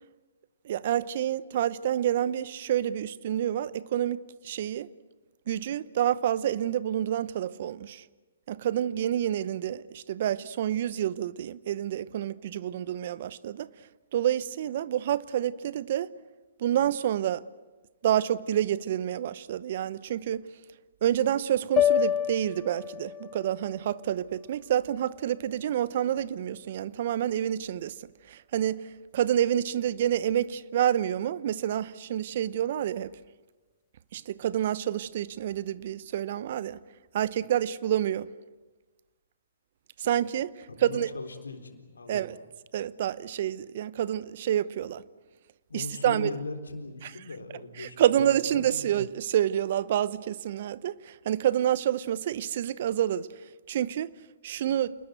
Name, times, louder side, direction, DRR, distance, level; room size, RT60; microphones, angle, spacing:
voice 1, 0.6-4.9 5.5-8.0 8.5-13.7 14.1-16.1 16.6-17.4 18.0-20.5 21.0-28.0 28.3-33.1 34.1-36.8 37.1-38.3 40.0-40.5 40.8-41.1 42.1-42.4 42.7-45.0 45.7-46.3 47.8-53.3 53.7-54.1 54.4-55.0, right 11 dB, 50° right, 0.9 m, -28 dB
sound 1, 21.8-26.0, left 10 dB, 25° left, 1.2 m, -30 dB
voice 2, 40.7-42.3 45.7-48.9, left 3 dB, 85° left, 3.8 m, -39 dB
28.5 x 20.5 x 8.0 m
figure-of-eight pair, 125°, 0 cm